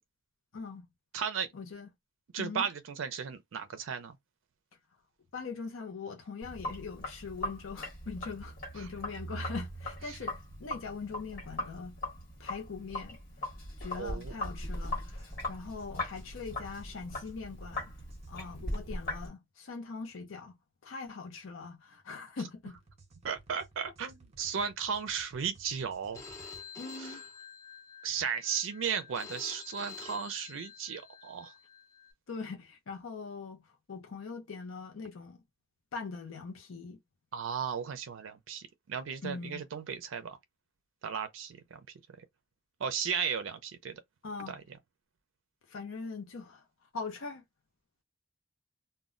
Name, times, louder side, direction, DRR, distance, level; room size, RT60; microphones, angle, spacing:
voice 1, 0.5-0.9 1.5-1.9 2.4-2.7 5.3-12.0 12.4-13.2 13.8-17.9 18.3-20.6 20.8-22.8 26.8-27.2 32.3-35.4 35.9-37.0 39.2-39.6 44.2-44.6 45.7-46.6 46.9-47.4, left 4 dB, 90° left, 0.5 m, -42 dB
voice 2, 1.1-1.5 2.3-4.2 8.8-8.9 10.1-10.2 14.0-14.3 23.2-26.2 27.0-27.2 28.0-31.5 37.3-40.4 41.0-41.8 42.8-44.0 44.5-44.6, right 7 dB, 85° right, 0.4 m, -35 dB
Sink (filling or washing), 6.4-19.3, left 1 dB, 50° left, 1.3 m, -39 dB
sound 1, 15.1-18.8 22.7-26.6, right 3 dB, 35° right, 0.6 m, -58 dB
Telephone, 26.1-32.1, left 5 dB, 15° left, 0.7 m, -48 dB
2.1 x 2.0 x 3.6 m
head